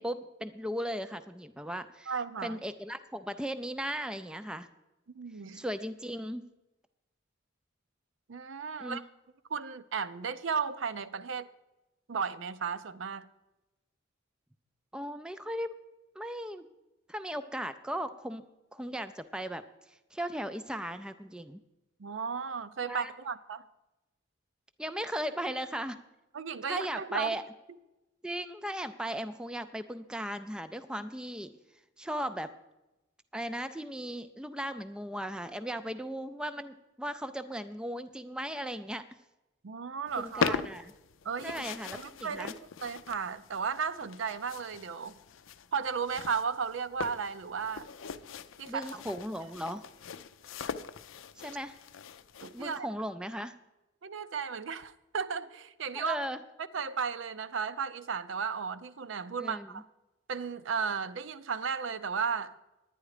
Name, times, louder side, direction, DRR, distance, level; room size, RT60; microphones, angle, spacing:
voice 1, 0.0-2.1 2.4-4.7 5.5-6.5 8.8-9.0 14.9-15.7 16.2-16.7 17.1-18.4 18.7-21.6 22.8-23.1 24.8-26.0 26.7-27.4 28.2-31.6 32.0-32.5 33.3-39.0 40.1-40.9 41.4-42.5 48.7-49.9 51.4-51.8 52.5-53.5 55.9-56.4 59.4-59.7, equal, 5° right, 10 dB, 0.3 m, -37 dB
voice 2, 2.1-2.6 5.1-5.6 8.3-9.0 9.5-11.5 12.1-13.3 22.0-23.6 26.3-27.4 39.6-40.5 41.2-41.6 41.9-45.1 45.7-47.9 48.6-48.9 52.4-52.9 54.0-56.2 56.7-59.9 60.3-62.7, right 6 dB, 70° right, 13 dB, 0.5 m, -34 dB
sound 1, 40.1-52.8, left 6 dB, 80° left, 0.5 m, -40 dB
10.5 x 9.9 x 4.9 m, 0.99 s
head